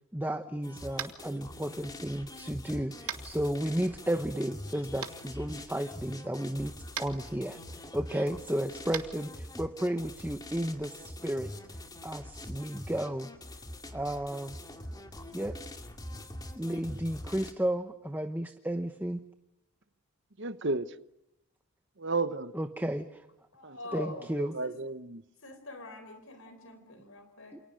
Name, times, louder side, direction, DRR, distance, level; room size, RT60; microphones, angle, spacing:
voice 1, 0.1-6.7 7.0-11.5 12.0-13.3 13.9-14.6 15.3-15.5 16.5-19.2 22.5-23.3 23.9-24.5 27.5-27.6, right 1 dB, 10° right, 0.9 m, -33 dB
sound 1, 0.6-17.5, left 1 dB, 15° left, 2.3 m, -44 dB
Tap, 0.9-1.2 3.1-3.2 5.0-5.1 6.9-7.1 8.9-9.0, right 9 dB, 85° right, 2.7 m, -36 dB
voice 2, 20.4-20.9 22.0-22.5 23.6-23.8 24.4-25.2, right 3 dB, 55° right, 1.0 m, -32 dB
voice 3, 23.5-24.3 24.6-24.7 25.4-27.6, left 2 dB, 65° left, 4.3 m, -44 dB
29.5 x 28.0 x 6.5 m
head